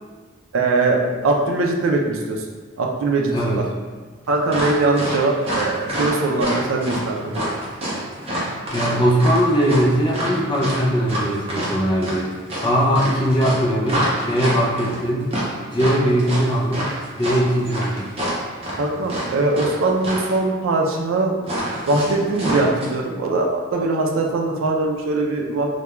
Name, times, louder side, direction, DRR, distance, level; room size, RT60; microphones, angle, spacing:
voice 1, 0.5-2.4 2.8-3.7 4.3-7.4 18.8-21.3 21.9-25.7, right 2 dB, 90° right, 1 dB, 0.4 m, -21 dB
voice 2, 3.3-3.7 8.7-12.3 12.6-15.3 15.7-16.9 17.1-18.1, equal, 25° left, -4 dB, 0.4 m, -20 dB
sound 1, 4.5-19.7 20.0-20.3 21.4-22.8, equal, 30° right, 0.6 m, -27 dB
2.2 x 2.2 x 2.9 m, 1.4 s
head